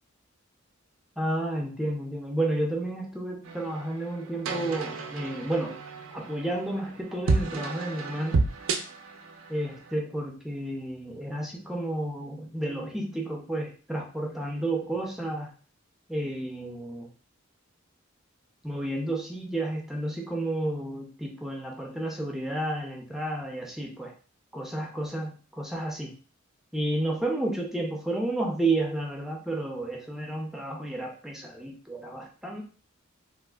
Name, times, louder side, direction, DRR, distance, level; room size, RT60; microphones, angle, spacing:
voice 1, 1.2-5.8 6.1-8.4 9.5-15.5 16.1-17.1 18.6-24.1 24.5-26.1 26.7-32.6, right 1 dB, ahead, 0 dB, 0.5 m, -31 dB
sound 1, 3.4-9.9, right 3 dB, 70° right, 0.5 m, -32 dB
3.4 x 2.4 x 2.3 m, 0.38 s
head